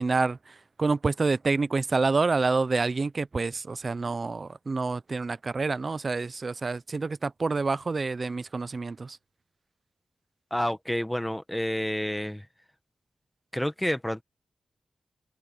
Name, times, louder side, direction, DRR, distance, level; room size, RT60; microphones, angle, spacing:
voice 1, 0.0-9.2, right 4 dB, 40° right, 0.5 m, -28 dB
voice 2, 10.5-12.5 13.5-14.2, equal, 5° left, 1.1 m, -29 dB
open air
wide cardioid pair, 155°, 0 cm